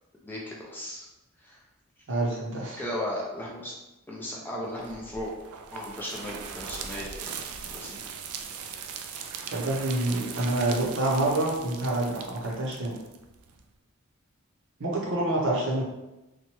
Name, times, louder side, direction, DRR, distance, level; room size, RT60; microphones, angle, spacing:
voice 1, 0.2-1.0 1.4-1.6 2.8-3.7 4.1-5.3 5.7-7.3 7.7-8.0, left 1 dB, 10° left, -4 dB, 0.4 m, -36 dB
voice 2, 2.1-2.8 9.5-13.0 14.8-15.8, right 2 dB, 60° right, -3 dB, 0.7 m, -27 dB
sound 1, 4.8-13.6, right 6 dB, 90° right, 0.3 m, -40 dB
2.8 x 2.2 x 2.9 m, 0.99 s
head